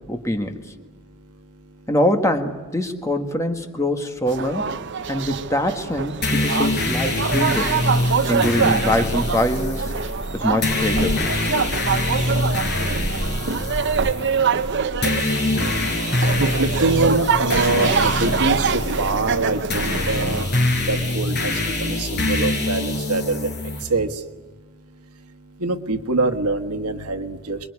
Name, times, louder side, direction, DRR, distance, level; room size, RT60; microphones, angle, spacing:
voice 1, 0.1-0.6 1.9-4.7 5.1-7.8 8.3-9.9 10.3-11.2, left 1 dB, 15° left, 6 dB, 1.6 m, -23 dB
sound 1, 4.3-20.5, right 5 dB, 50° right, 0.8 m, -25 dB
sound 2, 6.2-23.8, left 2 dB, 50° left, 5.8 m, -24 dB
voice 2, 16.4-20.5 20.9-21.5 21.8-23.5 23.9-24.1 25.6-27.6, right 2 dB, 85° right, 7 dB, 1.5 m, -24 dB
26.5 x 22.5 x 9.7 m, 1.2 s
head